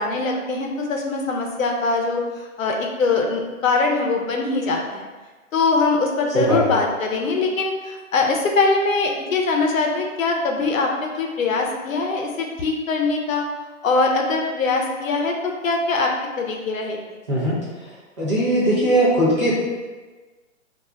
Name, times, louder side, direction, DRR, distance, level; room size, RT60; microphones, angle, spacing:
voice 1, 0.0-5.1 5.5-13.4 13.8-16.1 16.4-17.0, left 3 dB, 90° left, 1 dB, 0.7 m, -22 dB
voice 2, 6.3-6.7 17.3-17.6 18.2-19.5, right 1 dB, 25° right, -9 dB, 0.5 m, -19 dB
2.4 x 2.1 x 3.5 m, 1.3 s
hypercardioid pair, 165°, 39 cm